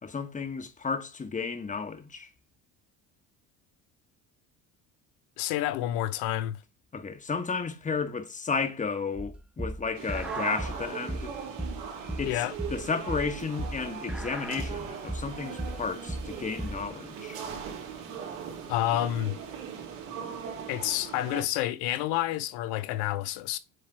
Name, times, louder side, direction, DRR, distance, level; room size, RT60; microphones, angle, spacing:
voice 1, 0.0-2.3 6.9-11.3 12.2-12.4 12.7-17.4, left 5 dB, 20° left, 1.1 m, -33 dB
voice 2, 5.4-6.6 12.3-12.5 18.7-19.4 20.7-23.6, left 13 dB, 75° left, 0.8 m, -29 dB
sound 1, 9.2-16.9, right 1 dB, 5° right, 1.0 m, -36 dB
sound 2, 9.9-21.4, right 6 dB, 80° right, 2.6 m, -39 dB
7.8 x 3.2 x 4.5 m
supercardioid pair, 100°, 39 cm